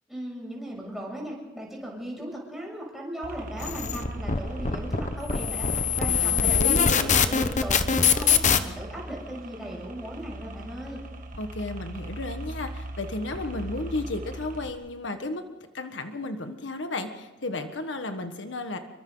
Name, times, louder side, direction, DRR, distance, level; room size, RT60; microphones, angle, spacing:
voice 1, 0.1-5.7 6.0-11.1, equal, ahead, -3 dB, 7.1 m, -37 dB
sound 1, 3.2-14.7, right 1 dB, 45° right, 1.7 m, -39 dB
sound 2, 3.6-8.6, left 6 dB, 40° left, 1.0 m, -23 dB
voice 2, 6.4-7.2 11.4-15.4 15.7-18.8, left 2 dB, 85° left, 7 dB, 1.5 m, -33 dB
28.0 x 23.5 x 4.0 m, 1.1 s
head